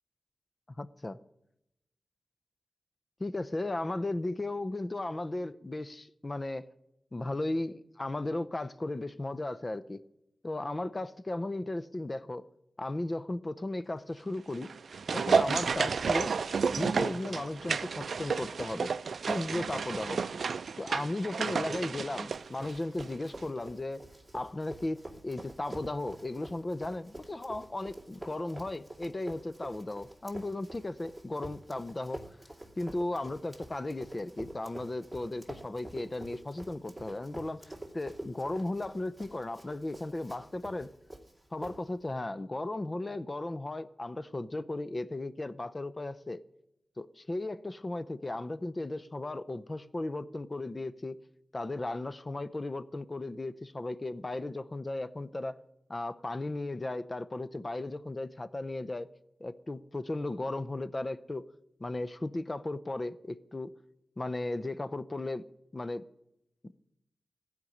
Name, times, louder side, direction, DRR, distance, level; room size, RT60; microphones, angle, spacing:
voice 1, 0.8-1.2 3.2-6.6 7.1-10.0 10.4-12.4 12.8-14.7 15.1-16.3 16.8-18.9 19.3-20.2 20.8-24.0 24.3-32.2 32.8-40.9 41.5-46.4 47.0-51.2 51.5-55.6 55.9-59.1 59.4-61.5 61.8-63.7 64.2-65.4 65.7-66.0 66.6-66.8, left 2 dB, 30° left, 0.6 m, -36 dB
sound 1, 14.5-23.1 23.4-23.5, right 5 dB, 80° right, 0.4 m, -31 dB
Run, 22.3-42.2, right 1 dB, ahead, 2.7 m, -48 dB
15.5 x 5.2 x 9.7 m
wide cardioid pair, 70°, 0 cm